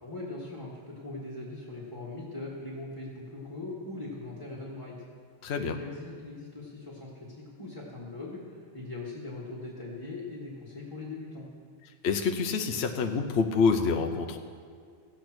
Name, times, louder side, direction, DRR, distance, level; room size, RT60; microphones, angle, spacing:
voice 1, 0.0-5.0 5.6-11.5, left 2 dB, 15° left, -6 dB, 1.7 m, -40 dB
voice 2, 5.4-5.8 12.0-14.4, left 5 dB, 55° left, 5 dB, 1.0 m, -27 dB
15.0 x 8.6 x 6.1 m, 2.1 s
omnidirectional pair, 1.4 m